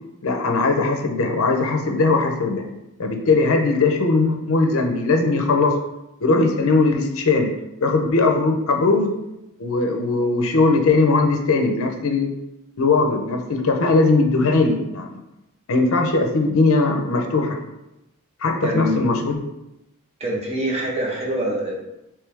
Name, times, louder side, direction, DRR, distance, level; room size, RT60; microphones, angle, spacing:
voice 1, 0.2-2.6 3.0-5.7 6.2-7.5 7.8-9.1 9.6-12.3 12.8-15.2 15.7-17.6 18.4-19.4, left 3 dB, 65° left, 3 dB, 0.6 m, -19 dB
voice 2, 18.6-19.1 20.2-21.8, equal, 30° right, -2 dB, 0.9 m, -25 dB
3.3 x 3.1 x 3.3 m, 0.90 s
head